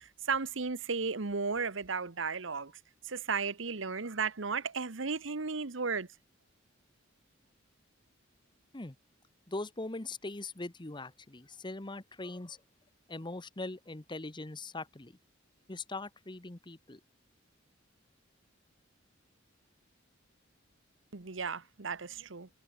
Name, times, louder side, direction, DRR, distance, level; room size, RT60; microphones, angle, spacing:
voice 1, 0.0-2.7 3.1-6.1 21.1-22.5, right 5 dB, 70° right, 1.2 m, -34 dB
voice 2, 9.5-12.6 13.1-15.1 15.7-17.0, left 2 dB, 25° left, 1.1 m, -41 dB
head